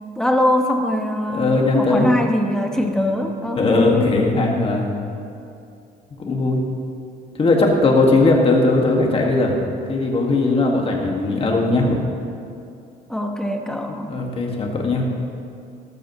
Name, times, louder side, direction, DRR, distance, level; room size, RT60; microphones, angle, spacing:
voice 1, 0.2-4.2 13.1-14.1, left 1 dB, 5° left, 2 dB, 1.2 m, -22 dB
voice 2, 1.3-2.1 3.6-4.9 6.3-6.6 7.4-9.6 9.9-12.0 13.9-15.1, left 2 dB, 35° left, 0 dB, 2.0 m, -18 dB
13.5 x 12.5 x 3.2 m, 2.5 s
cardioid pair, 110°, 17 cm